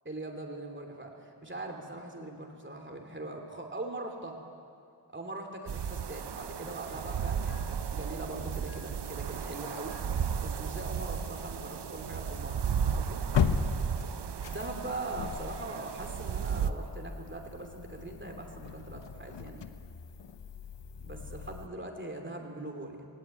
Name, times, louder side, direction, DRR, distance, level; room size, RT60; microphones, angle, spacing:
voice 1, 0.0-4.4 5.1-10.0 10.4-13.2 14.5-19.6 21.0-23.1, right 2 dB, 25° right, 2 dB, 2.9 m, -41 dB
sound 1, 5.7-16.7, right 7 dB, 65° right, 0.8 m, -34 dB
sound 2, 6.9-21.7, left 7 dB, 75° left, 1.1 m, -39 dB
20.5 x 18.5 x 9.1 m, 2.3 s
wide cardioid pair, 100°, 43 cm